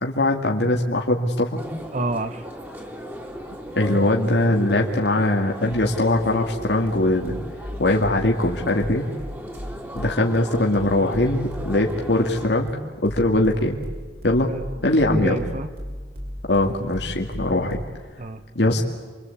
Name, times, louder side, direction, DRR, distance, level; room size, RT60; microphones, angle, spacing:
voice 1, 0.0-1.6 3.8-7.3 7.8-9.0 9.9-12.7 13.0-13.8 14.2-14.5 14.8-15.4 16.5-17.8 18.5-18.8, left 1 dB, 75° left, 1 dB, 2.2 m, -21 dB
sound 1, 1.6-12.5, equal, 15° right, 3.1 m, -37 dB
voice 2, 1.9-2.5 14.5-15.7 18.2-18.4, right 2 dB, 45° right, 10 dB, 1.1 m, -29 dB
sound 2, 5.7-18.1, equal, 60° right, 7.7 m, -36 dB
29.0 x 24.5 x 8.4 m, 1.5 s
head